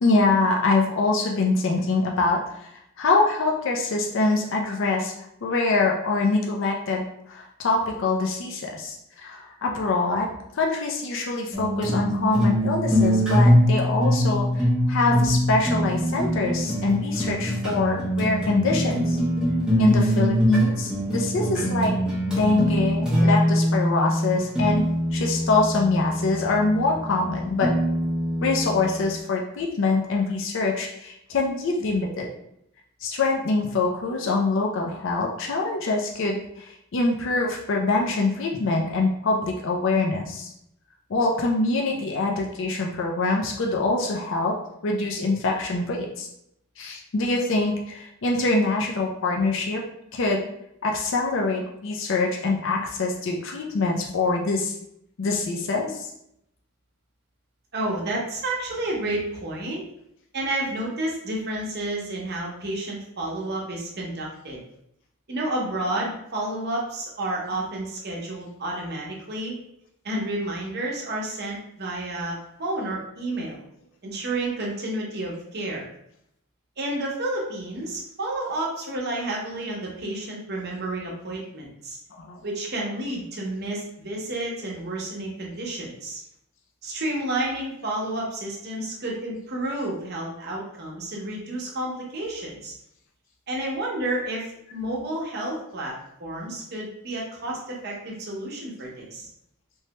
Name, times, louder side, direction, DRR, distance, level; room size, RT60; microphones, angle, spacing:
voice 1, 0.0-2.7 3.0-5.1 5.4-10.3 10.5-14.6 14.9-19.2 19.8-21.9 22.3-24.8 25.1-27.7 28.4-32.3 33.0-40.5 41.1-44.6 44.8-46.3 46.8-49.8 50.1-50.4 50.8-54.7 55.2-56.1 65.9-66.0 67.5-67.6 82.2-82.4, left 3 dB, 60° left, 0 dB, 0.4 m, -24 dB
sound 1, 11.5-29.2, equal, 5° right, 0.6 m, -23 dB
voice 2, 57.7-59.8 60.3-64.6 65.3-69.6 70.0-73.6 74.0-75.9 76.8-82.0 82.4-86.2 86.8-92.7 93.5-99.3, right 1 dB, 50° right, -3 dB, 0.8 m, -30 dB
3.1 x 2.1 x 2.9 m, 0.76 s
head